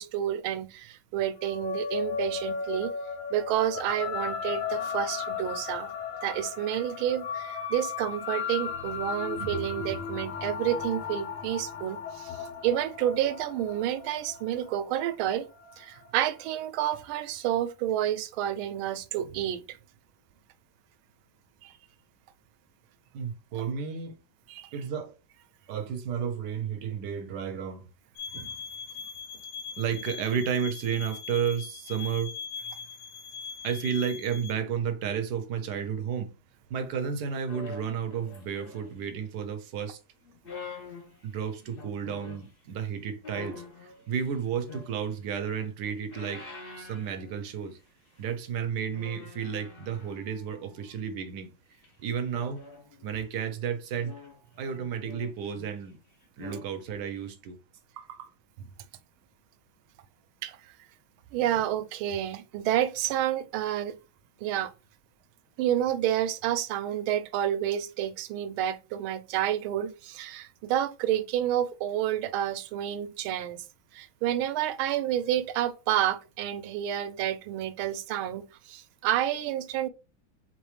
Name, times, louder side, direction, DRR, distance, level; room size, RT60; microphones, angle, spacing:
voice 1, 0.0-2.9 3.3-5.9 6.2-15.5 15.8-19.8 21.6-21.7 24.5-24.7 28.3-28.5 60.4-60.6 61.3-64.0 64.4-64.7 65.6-73.6 73.9-79.9, right 11 dB, 85° right, 1.4 m, -29 dB
sound 1, 1.4-16.1, left 6 dB, 85° left, 0.6 m, -35 dB
voice 2, 23.1-24.2 24.7-25.1 25.7-27.9 29.8-32.3 33.6-36.3 36.7-40.0 41.2-46.5 46.8-47.8 48.2-51.5 52.0-52.6 53.0-54.1 54.6-56.0 56.4-57.6 58.0-58.3, right 7 dB, 65° right, 1.1 m, -32 dB
sound 2, 28.2-34.5, left 6 dB, 70° left, 1.0 m, -41 dB
sound 3, 37.5-39.2 40.2-42.5 43.2-45.3 45.7-47.8 48.1-48.3 48.9-51.0 51.8-53.1 53.9-55.9 56.2-56.7 57.2-57.3, left 4 dB, 50° left, 0.6 m, -46 dB
4.0 x 3.9 x 3.2 m
omnidirectional pair, 2.2 m